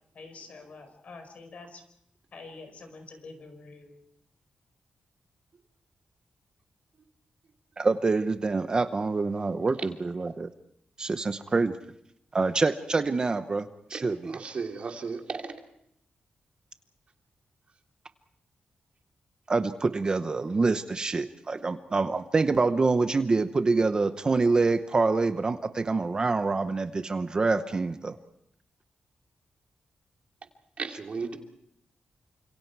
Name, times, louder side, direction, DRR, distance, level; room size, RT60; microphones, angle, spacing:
voice 1, 0.1-1.8 2.3-4.0, left 3 dB, 55° left, 7 dB, 5.0 m, -46 dB
voice 2, 7.8-10.5 11.0-11.8 12.3-14.4 19.5-28.2, right 3 dB, 30° right, 9 dB, 0.9 m, -26 dB
voice 3, 13.9-15.5 30.8-31.4, right 4 dB, 50° right, 3 dB, 2.8 m, -35 dB
29.0 x 26.5 x 4.7 m, 0.73 s
wide cardioid pair, 155°, 3 cm